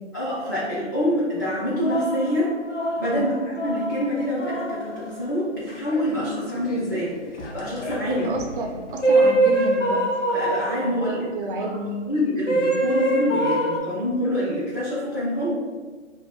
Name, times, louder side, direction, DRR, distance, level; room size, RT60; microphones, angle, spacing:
voice 1, 0.1-2.6 3.0-7.1 7.5-8.3 10.3-11.3 11.6-11.8 12.1-15.6, equal, 15° left, -10 dB, 0.3 m, -26 dB
sound 1, 1.4-5.2 5.9-11.3 12.5-13.8, right 2 dB, 85° left, 0.7 m, -25 dB
voice 2, 8.1-10.4 10.8-12.1, right 1 dB, 50° right, 2 dB, 0.6 m, -31 dB
2.6 x 2.4 x 3.3 m, 1.4 s
hypercardioid pair, 135°, 35 cm